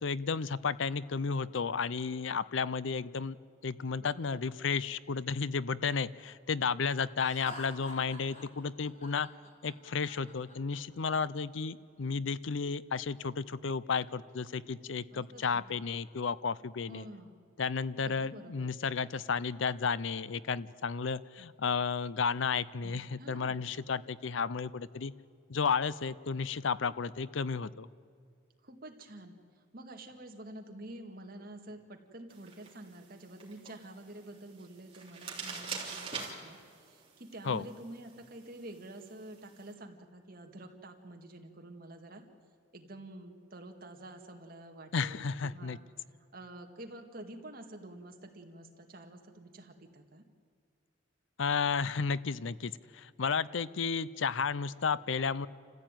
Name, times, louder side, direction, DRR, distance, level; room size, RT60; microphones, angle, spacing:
voice 1, 0.0-3.4 3.6-9.3 9.6-17.0 17.6-25.1 25.5-27.9 37.5-37.6 44.9-45.8 51.4-55.5, left 5 dB, 65° left, 18 dB, 0.6 m, -33 dB
voice 2, 4.0-4.5 15.1-15.9 16.9-17.4 18.0-18.8 22.8-23.6 28.6-42.2 42.7-45.9 46.3-50.2, right 1 dB, 45° right, 3 dB, 2.1 m, -49 dB
Laughter, 7.2-11.1, equal, 35° left, 3.9 m, -48 dB
sound 1, 32.3-39.7, right 5 dB, 25° right, 3.5 m, -46 dB
28.5 x 15.0 x 9.2 m, 2.2 s
head